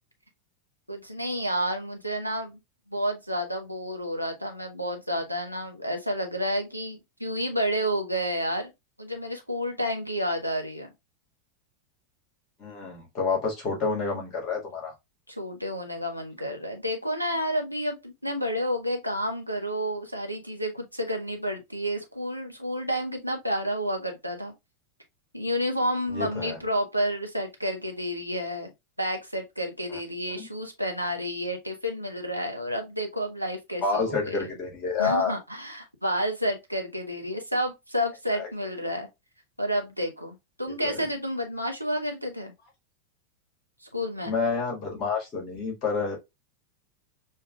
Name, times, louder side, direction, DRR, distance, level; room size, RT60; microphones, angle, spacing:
voice 1, 0.9-2.6 2.9-8.7 9.0-10.9 15.3-24.5 25.3-28.7 29.0-34.5 35.0-39.1 39.6-42.5 43.9-44.3, equal, 90° right, 0.8 m, -30 dB
voice 2, 12.6-14.9 26.1-26.6 29.9-30.0 30.4-30.5 33.8-35.4 38.3-38.5 40.8-41.0 44.3-46.2, left 4 dB, 35° left, 1.7 m, -29 dB
6.4 x 2.3 x 2.3 m
figure-of-eight pair, 90°, 0 cm